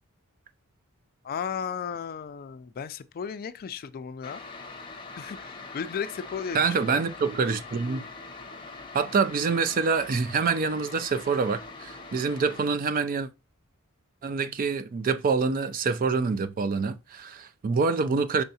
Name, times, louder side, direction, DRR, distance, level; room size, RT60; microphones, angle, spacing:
voice 1, 1.2-4.4 5.2-7.0, left 7 dB, 45° left, 0.3 m, -35 dB
sound 1, 4.2-12.7, left 3 dB, 25° left, 0.7 m, -43 dB
voice 2, 6.5-8.1 8.9-13.3 14.2-18.4, right 5 dB, 40° right, 0.4 m, -26 dB
5.6 x 3.4 x 2.7 m
head